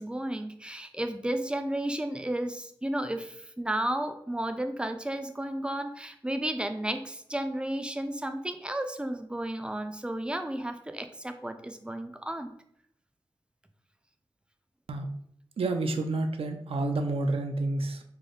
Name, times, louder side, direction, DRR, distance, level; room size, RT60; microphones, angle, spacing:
voice 1, 0.0-12.5, right 1 dB, 10° right, 7 dB, 0.3 m, -33 dB
voice 2, 15.6-18.0, right 2 dB, 85° right, 5 dB, 0.4 m, -29 dB
3.3 x 2.0 x 3.8 m, 0.71 s
wide cardioid pair, 75°, 9 cm